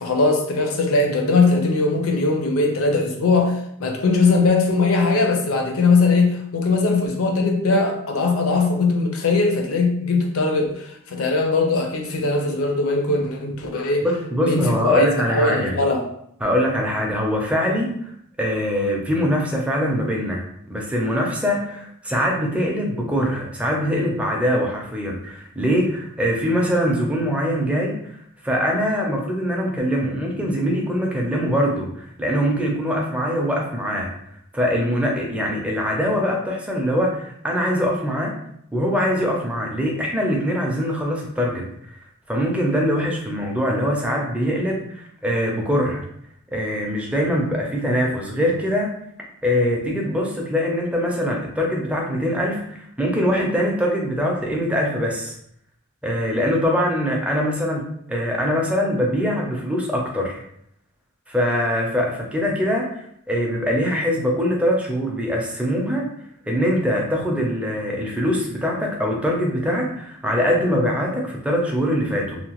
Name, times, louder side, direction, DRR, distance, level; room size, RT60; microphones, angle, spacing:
voice 1, 0.0-14.1 14.4-16.0, left 3 dB, 70° left, 2 dB, 0.5 m, -20 dB
voice 2, 14.0-15.8 16.4-17.9 18.4-20.4 20.7-28.0 28.4-34.1 34.5-38.3 38.7-41.6 42.3-46.0 46.5-48.9 49.4-55.4 56.0-57.8 58.1-60.4 61.3-66.1 66.5-72.4, equal, 5° right, -1 dB, 0.5 m, -23 dB
2.8 x 2.1 x 2.9 m, 0.71 s
head